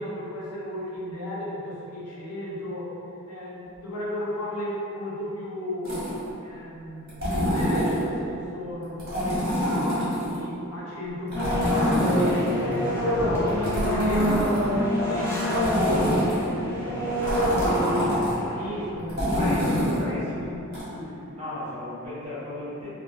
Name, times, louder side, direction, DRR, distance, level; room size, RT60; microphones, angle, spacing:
voice 1, 0.0-2.9 3.3-6.1 6.4-12.3 12.5-14.4 14.7-17.2 18.4-21.2, left 1 dB, 85° left, -5 dB, 0.7 m, -34 dB
sound 1, 5.8-6.3 7.1-8.0 9.0-10.4 11.3-12.8 13.5-14.8 15.5-16.5 17.2-18.3 19.1-20.0 20.7-20.8, equal, 45° right, 1.5 m, -26 dB
sound 2, 11.3-18.8, equal, 10° left, 0.5 m, -26 dB
voice 2, 19.3-20.5 21.0-22.9, left 1 dB, 25° right, -12 dB, 1.0 m, -35 dB
3.4 x 2.4 x 2.6 m, 2.7 s
head